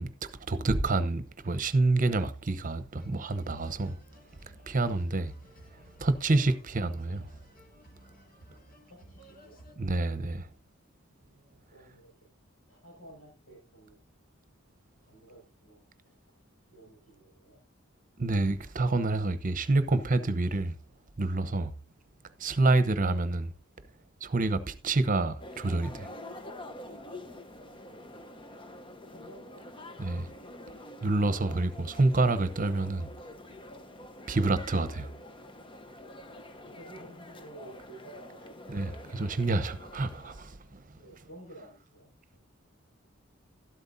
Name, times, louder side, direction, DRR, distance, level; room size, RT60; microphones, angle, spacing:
voice 1, 0.0-4.0 4.7-5.3 6.0-7.3 9.8-10.5 18.2-20.7 21.2-21.7 22.4-23.5 24.2-26.1 30.0-30.2 31.0-33.1 34.3-35.1 38.7-40.8, right 2 dB, 40° right, 0.9 m, -28 dB
sound 1, 3.0-9.7, right 1 dB, 45° left, 2.3 m, -55 dB
voice 2, 5.8-6.1 8.8-9.6 11.2-12.3 12.7-14.0 15.0-15.8 16.7-17.6 27.7-28.4 29.0-30.8 36.6-38.5 40.9-42.4, right 1 dB, 90° left, 5.9 m, -53 dB
sound 2, 25.4-40.5, left 1 dB, 25° left, 0.9 m, -47 dB
12.5 x 12.5 x 2.7 m
head